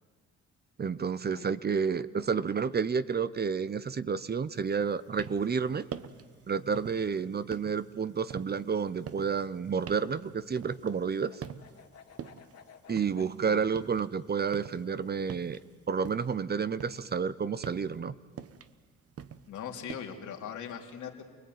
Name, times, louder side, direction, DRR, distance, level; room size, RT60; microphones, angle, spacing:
voice 1, 0.8-5.8 6.5-11.4 12.9-15.6 15.9-18.1, right 6 dB, 35° right, 15 dB, 0.8 m, -30 dB
sound 1, 4.2-16.2, right 8 dB, 70° right, 7.3 m, -63 dB
sound 2, 5.0-5.6 5.9-6.3 6.7-7.1 7.5-11.1 11.4-11.9 12.2-14.1 14.4-16.4 16.7-20.0, right 8 dB, 50° right, 1.1 m, -45 dB
sound 3, 8.7-13.3, left 7 dB, 55° left, 2.1 m, -56 dB
voice 2, 19.5-21.2, left 8 dB, 75° left, 2 dB, 3.1 m, -40 dB
29.0 x 20.0 x 9.4 m, 1.5 s
cardioid pair, 90°, 30 cm